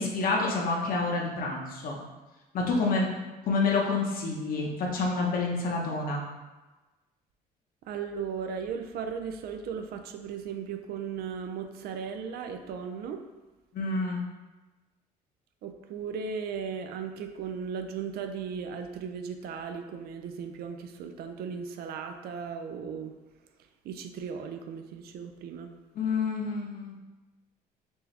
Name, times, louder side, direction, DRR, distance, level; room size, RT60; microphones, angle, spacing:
voice 1, 0.0-2.0 2.5-3.1 3.4-6.2 13.7-14.2 25.9-27.0, left 3 dB, 60° left, -1 dB, 0.9 m, -28 dB
voice 2, 7.8-13.3 15.6-23.1 23.8-25.7, right 6 dB, 70° right, 6 dB, 0.4 m, -36 dB
4.5 x 2.7 x 3.3 m, 1.1 s
cardioid pair, 110°, 17 cm